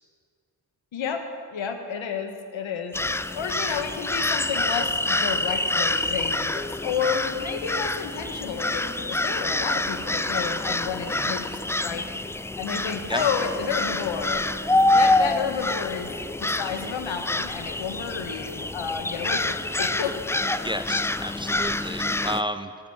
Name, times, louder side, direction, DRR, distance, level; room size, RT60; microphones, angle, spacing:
voice 1, 0.9-2.9 3.3-11.5 11.8-12.1 12.6-14.5 14.9-16.1 16.4-20.1, left 6 dB, 70° left, 6 dB, 1.6 m, -31 dB
sound 1, 2.9-22.4, left 2 dB, 5° left, 0.3 m, -26 dB
voice 2, 20.6-22.7, equal, 10° right, 9 dB, 0.7 m, -31 dB
17.5 x 7.7 x 7.4 m, 2.3 s
supercardioid pair, 45°, 48 cm